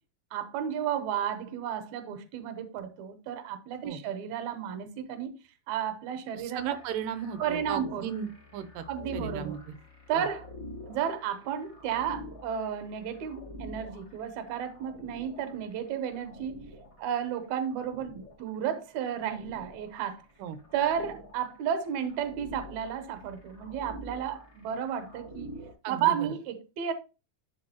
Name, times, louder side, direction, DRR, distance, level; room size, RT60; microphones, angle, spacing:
voice 1, 0.3-5.3 5.7-6.8 7.4-8.1 8.9-9.6 10.1-10.5 10.9-16.6 17.0-20.2 20.7-25.5 25.9-26.9, right 9 dB, 70° right, 2.2 m, -32 dB
voice 2, 6.4-8.9 9.1-9.6 10.2-10.3 20.4-20.6 25.8-26.2, right 9 dB, 90° right, 2.4 m, -36 dB
sound 1, 6.6-25.7, left 1 dB, 25° left, 0.6 m, -47 dB
11.0 x 4.9 x 2.9 m
omnidirectional pair, 3.7 m